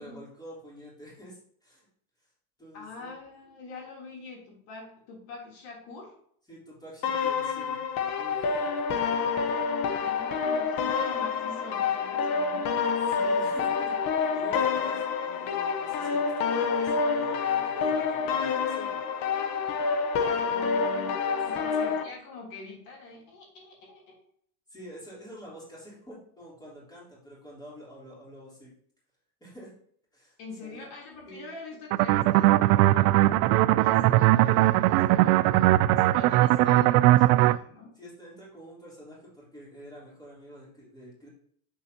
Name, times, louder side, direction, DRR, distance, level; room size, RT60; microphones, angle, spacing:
voice 1, 0.0-1.9 2.2-2.3 2.6-3.1 6.5-7.8 8.2-8.7 13.0-13.9 14.3-19.0 21.5-21.7 24.7-28.7 29.4-29.7 30.1-30.9 31.2-31.5 37.9-41.3, equal, 10° left, -7 dB, 3.6 m, -47 dB
voice 2, 2.7-6.2 9.9-12.7 20.4-21.2 21.4-24.2 30.4-38.0, left 3 dB, 65° left, -2 dB, 3.4 m, -45 dB
sound 1, 7.0-22.0, left 5 dB, 50° left, 1.0 m, -27 dB
sound 2, 31.9-37.6, right 16 dB, 80° right, 0.5 m, -20 dB
8.0 x 6.9 x 2.9 m, 0.63 s
cardioid pair, 150°, 44 cm